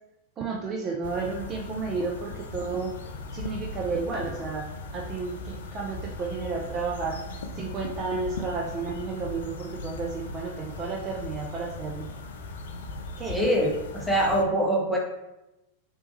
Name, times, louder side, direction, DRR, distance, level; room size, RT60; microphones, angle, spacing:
voice 1, 0.4-2.9 3.3-12.1 13.2-13.4, right 4 dB, 30° right, -1 dB, 0.4 m, -32 dB
sound 1, 1.0-14.4, left 2 dB, 60° left, 0.3 m, -38 dB
voice 2, 13.3-15.0, equal, ahead, -3 dB, 0.7 m, -24 dB
3.2 x 2.9 x 2.9 m, 0.93 s
figure-of-eight pair, 90°, 0 cm